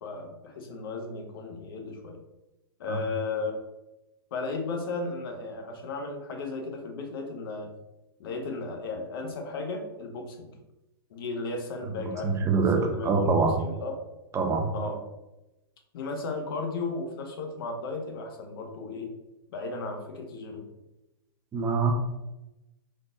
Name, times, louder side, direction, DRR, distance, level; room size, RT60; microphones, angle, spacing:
voice 1, 0.0-2.2 2.8-3.6 4.3-7.7 8.2-10.5 11.1-14.0 14.7-15.0 15.9-19.1 19.5-20.7, left 3 dB, 65° left, 3 dB, 0.9 m, -35 dB
voice 2, 12.2-13.6 14.3-14.7 21.5-21.9, right 4 dB, 20° right, 2 dB, 0.6 m, -24 dB
3.7 x 2.5 x 3.8 m, 0.98 s
hypercardioid pair, 115°, 13 cm